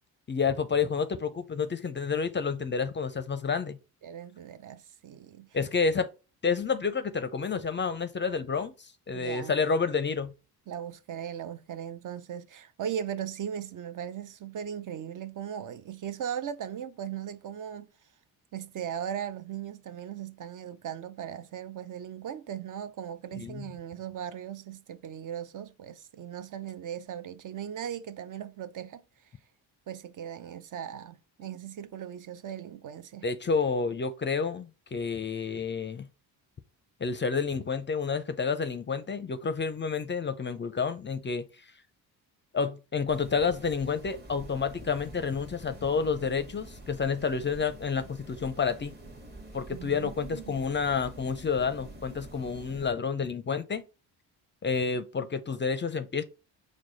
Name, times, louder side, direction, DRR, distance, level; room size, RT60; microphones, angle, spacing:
voice 1, 0.3-3.8 5.5-6.1 6.4-10.3 23.3-23.7 33.2-36.1 37.0-41.5 42.5-48.9 49.5-53.8 54.6-56.2, left 5 dB, 25° left, 0.4 m, -29 dB
voice 2, 4.0-5.5 9.1-9.5 10.7-17.9 18.5-29.0 29.9-33.3 49.7-50.6, right 9 dB, 50° right, 0.5 m, -38 dB
sound 1, 43.1-52.9, right 1 dB, 20° right, 1.2 m, -47 dB
4.7 x 2.1 x 3.9 m
supercardioid pair, 60°, 43 cm